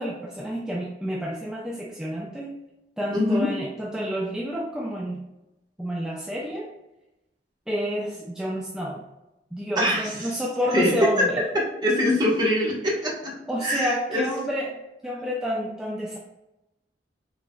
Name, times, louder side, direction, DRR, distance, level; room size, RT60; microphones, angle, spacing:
voice 1, 0.0-2.5 3.0-5.2 5.8-6.7 7.7-9.0 9.5-11.5 13.5-16.2, equal, 5° right, -3 dB, 0.5 m, -29 dB
voice 2, 3.1-3.5 9.8-10.1 10.7-10.9 11.5-13.4 13.6-14.2, left 1 dB, 25° right, -5 dB, 1.3 m, -23 dB
4.9 x 3.9 x 2.3 m, 0.94 s
head